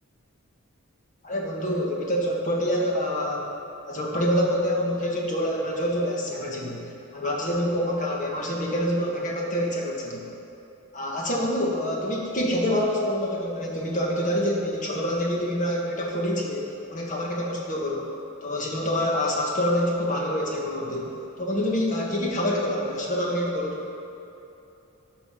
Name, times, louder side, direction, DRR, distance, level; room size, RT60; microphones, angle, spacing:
voice 1, 1.2-3.5 3.9-6.8 7.1-10.2 10.9-18.1 18.4-21.1 21.4-23.8, equal, 35° left, -2 dB, 1.5 m, -26 dB
13.0 x 5.5 x 5.8 m, 2.9 s
head